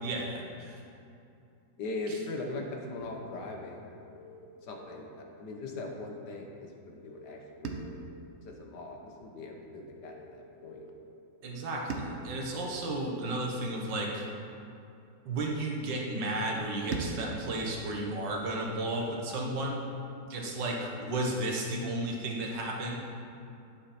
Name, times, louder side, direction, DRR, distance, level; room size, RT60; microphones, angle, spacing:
voice 1, 0.0-0.8 11.4-14.3 15.3-19.8 20.3-23.0, right 1 dB, 90° right, 0 dB, 1.9 m, -33 dB
voice 2, 1.8-4.0 4.6-7.9 8.4-10.9 12.3-12.4 20.4-20.5, left 2 dB, 75° left, 1 dB, 1.7 m, -40 dB
sound 1, 3.0-5.2 7.6-10.0 11.9-14.4 16.9-19.4, right 3 dB, 55° right, 0.8 m, -44 dB
sound 2, 4.0-5.0 7.0-8.0 9.9-10.9 12.8-13.8 15.8-16.8 18.7-19.1, left 4 dB, 55° left, 1.0 m, -52 dB
10.0 x 7.5 x 4.3 m, 2.6 s
omnidirectional pair, 1.9 m